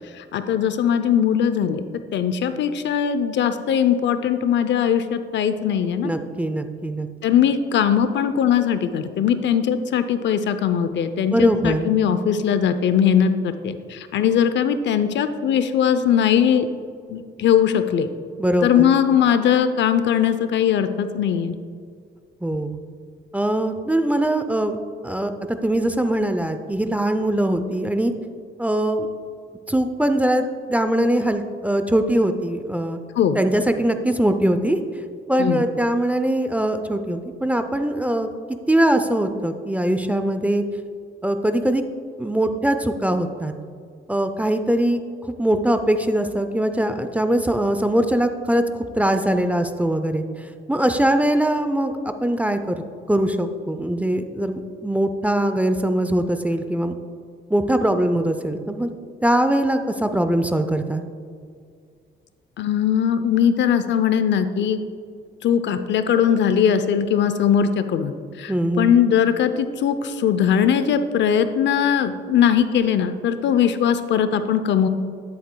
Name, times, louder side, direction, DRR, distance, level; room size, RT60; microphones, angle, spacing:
voice 1, 0.2-1.8 2.1-6.1 7.2-16.7 17.1-18.1 18.6-21.5 33.2-33.4 35.4-35.6 62.6-64.8 65.4-74.9, left 8 dB, 65° left, 10 dB, 0.5 m, -20 dB
voice 2, 6.0-7.1 11.3-11.9 18.4-19.0 22.4-22.8 23.3-24.8 25.0-25.3 25.6-28.1 28.6-29.1 29.7-30.4 30.7-33.0 33.4-34.8 35.3-38.3 38.7-40.6 41.2-41.8 42.2-43.5 44.1-48.6 49.0-50.2 50.7-56.9 57.5-58.9 59.2-61.0 68.5-68.9, right 1 dB, 5° right, 8 dB, 0.5 m, -21 dB
11.0 x 7.7 x 2.2 m, 2.2 s
cardioid pair, 90°, 20 cm